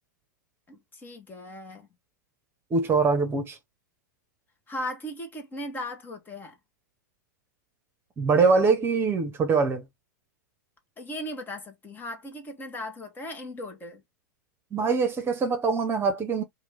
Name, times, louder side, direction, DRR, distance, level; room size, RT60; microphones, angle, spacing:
voice 1, 0.7-1.9 4.7-6.6 11.0-14.0, left 1 dB, 20° left, 1.3 m, -37 dB
voice 2, 2.7-3.6 8.2-9.8 14.7-16.4, right 4 dB, 20° right, 1.2 m, -23 dB
4.8 x 2.5 x 3.5 m
figure-of-eight pair, 100°, 10 cm